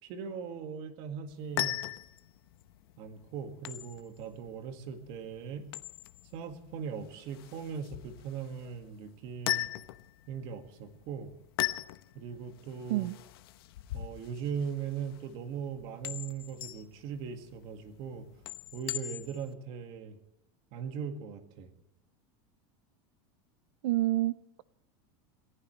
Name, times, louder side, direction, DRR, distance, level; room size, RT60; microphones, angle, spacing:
voice 1, 0.0-1.8 3.0-5.7 6.3-9.7 10.3-11.3 12.1-13.1 13.9-18.3 18.7-20.2 20.7-21.7, right 7 dB, 45° right, 7 dB, 2.0 m, -39 dB
sound 1, 1.3-19.5, left 15 dB, 90° left, 0.9 m, -40 dB
voice 2, 23.8-24.6, right 17 dB, 75° right, 16 dB, 0.5 m, -29 dB
28.5 x 15.5 x 3.2 m, 0.81 s
supercardioid pair, 170°, 12 cm